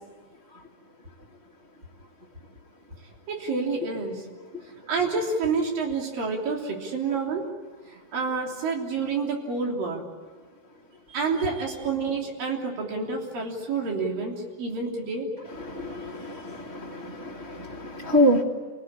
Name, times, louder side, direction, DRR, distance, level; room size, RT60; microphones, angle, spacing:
voice 1, 3.3-4.2 4.9-7.5 8.1-10.1 11.1-15.3, right 4 dB, 80° right, 0 dB, 5.0 m, -28 dB
voice 2, 15.5-18.4, equal, 25° right, -5 dB, 1.9 m, -26 dB
28.0 x 18.0 x 10.0 m, 1.4 s
omnidirectional pair, 3.9 m